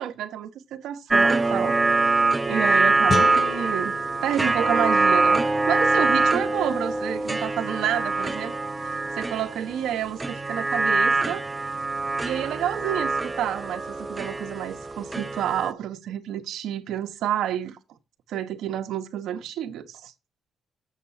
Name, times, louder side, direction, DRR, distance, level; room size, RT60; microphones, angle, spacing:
voice 1, 0.0-1.8 2.5-4.0 4.2-11.4 12.2-17.8 18.3-20.1, right 10 dB, 80° right, 1.0 m, -29 dB
sound 1, 1.1-15.7, right 3 dB, 20° right, 0.6 m, -24 dB
sound 2, 3.1-6.2, left 5 dB, 40° left, 0.5 m, -33 dB
7.4 x 6.6 x 5.7 m
cardioid pair, 90°, 0 cm